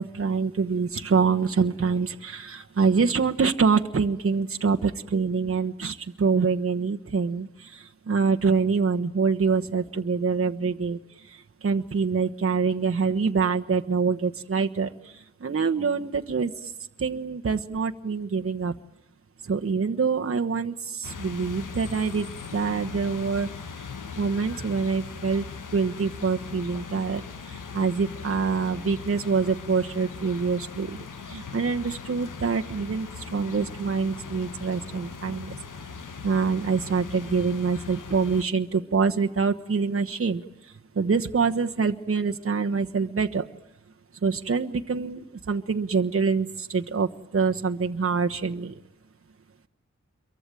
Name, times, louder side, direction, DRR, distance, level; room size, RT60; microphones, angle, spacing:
voice 1, 0.0-11.0 11.3-15.1 15.4-16.5 17.0-18.7 19.4-23.5 24.2-25.5 25.7-27.2 27.5-31.0 31.3-35.6 36.2-40.4 41.0-43.4 44.2-47.1 47.3-48.7, right 5 dB, 45° right, 4 dB, 1.2 m, -25 dB
sound 1, 21.0-38.4, left 5 dB, 85° left, 1.8 m, -40 dB
27.5 x 23.5 x 9.1 m, 0.90 s
wide cardioid pair, 75°, 30 cm